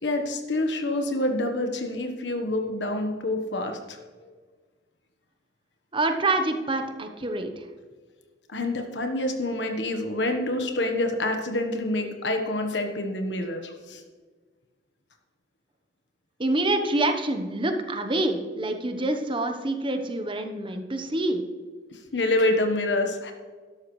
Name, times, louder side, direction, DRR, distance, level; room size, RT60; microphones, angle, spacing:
voice 1, 0.0-4.3 8.5-14.0 21.9-23.3, left 1 dB, 75° left, 4 dB, 1.3 m, -27 dB
voice 2, 5.9-7.7 16.4-21.4, right 2 dB, 30° right, 6 dB, 1.1 m, -26 dB
13.0 x 11.5 x 3.3 m, 1.5 s
head